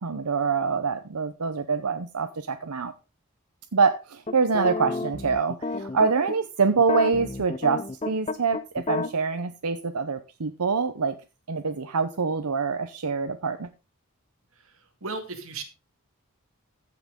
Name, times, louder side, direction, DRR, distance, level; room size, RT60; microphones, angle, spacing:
voice 1, 0.0-2.9 3.7-11.1 11.5-13.7, right 5 dB, 90° right, 9 dB, 0.8 m, -25 dB
sound 1, 4.3-6.4 6.8-9.1, left 3 dB, 30° left, 0.6 m, -30 dB
voice 2, 14.5-15.6, right 3 dB, 65° right, 6 dB, 2.1 m, -36 dB
15.5 x 6.0 x 3.8 m, 0.29 s
head